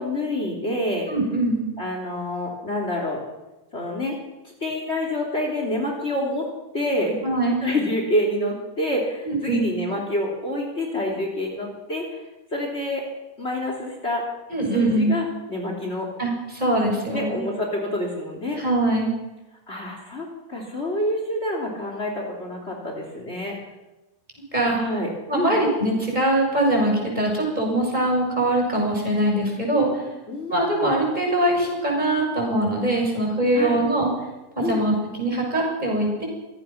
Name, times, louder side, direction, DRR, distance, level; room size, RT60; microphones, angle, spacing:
voice 1, 0.0-1.1 1.8-3.2 3.7-4.2 4.4-6.5 6.7-7.2 7.6-12.2 12.5-13.1 13.4-14.2 14.7-16.1 17.1-18.6 19.7-23.6 24.6-25.6 30.3-30.9 33.5-33.8 34.6-34.8, left 1 dB, 40° left, 1 dB, 3.5 m, -27 dB
voice 2, 1.1-1.6 7.2-7.6 9.2-9.7 14.5-15.1 16.2-17.4 18.6-19.1 24.5-24.8 25.3-30.0 30.5-34.1 34.6-36.2, right 1 dB, 25° right, 0 dB, 7.0 m, -22 dB
25.0 x 18.0 x 5.9 m, 1.0 s
omnidirectional pair, 1.7 m